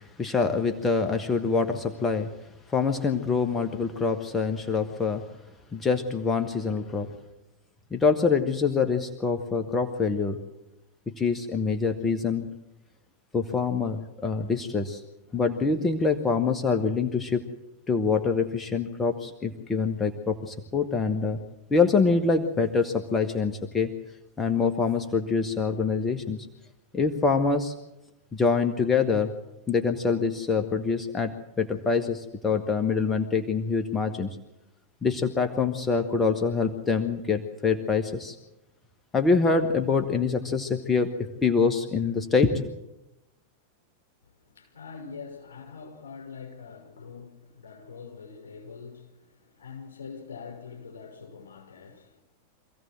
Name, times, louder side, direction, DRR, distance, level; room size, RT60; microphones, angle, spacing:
voice 1, 0.0-2.3 2.7-5.2 5.7-7.1 7.9-10.4 11.1-12.5 13.3-15.0 15.3-17.4 17.9-21.4 21.7-23.9 24.4-26.4 26.9-27.7 28.3-29.3 29.7-34.4 35.0-38.4 39.1-41.1 41.4-42.6, left 4 dB, 15° left, 1.5 m, -25 dB
voice 2, 44.2-52.2, left 5 dB, 70° left, 6.2 m, -44 dB
25.5 x 16.0 x 7.5 m
figure-of-eight pair, 90°, 0 cm